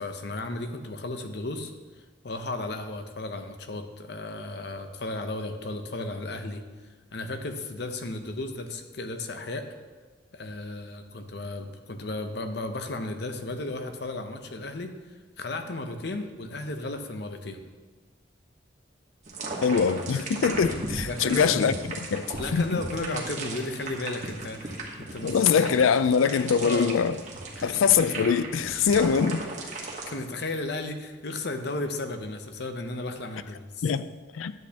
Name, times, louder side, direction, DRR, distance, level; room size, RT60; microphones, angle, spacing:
voice 1, 0.0-1.7 2.2-6.6 7.1-9.6 10.3-17.6 21.1-21.7 22.4-25.7 26.6-26.9 27.5-27.7 30.1-33.9, left 2 dB, 55° left, 0.7 m, -34 dB
sound 1, 19.2-30.2, right 2 dB, 40° right, 1.2 m, -36 dB
voice 2, 19.6-21.7 22.1-22.3 22.5-22.6 25.2-27.2 27.6-29.4 33.8-34.1 34.3-34.5, left 6 dB, 80° left, 0.4 m, -23 dB
10.5 x 8.2 x 2.8 m
head